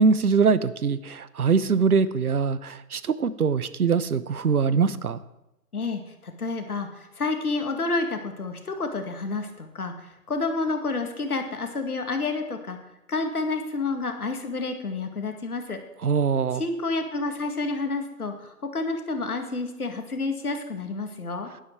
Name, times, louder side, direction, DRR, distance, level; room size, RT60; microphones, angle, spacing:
voice 1, 0.0-5.2 16.0-16.6, right 5 dB, 70° right, 15 dB, 1.0 m, -22 dB
voice 2, 5.7-12.8 13.1-15.8 16.5-21.5, left 3 dB, 70° left, 5 dB, 2.3 m, -29 dB
11.5 x 11.0 x 4.7 m, 0.91 s
figure-of-eight pair, 145°, 47 cm